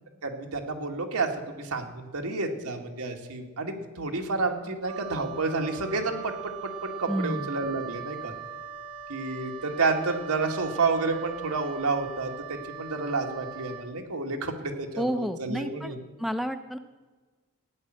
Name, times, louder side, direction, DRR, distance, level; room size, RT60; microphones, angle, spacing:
voice 1, 0.2-8.3 9.1-16.0, right 3 dB, 90° right, 2 dB, 2.1 m, -30 dB
Wind instrument woodwind instrument, 4.8-13.9, right 8 dB, 70° right, 1.2 m, -40 dB
voice 2, 7.1-7.5 15.0-16.8, equal, ahead, 7 dB, 0.6 m, -30 dB
15.0 x 10.0 x 7.7 m, 1.3 s
head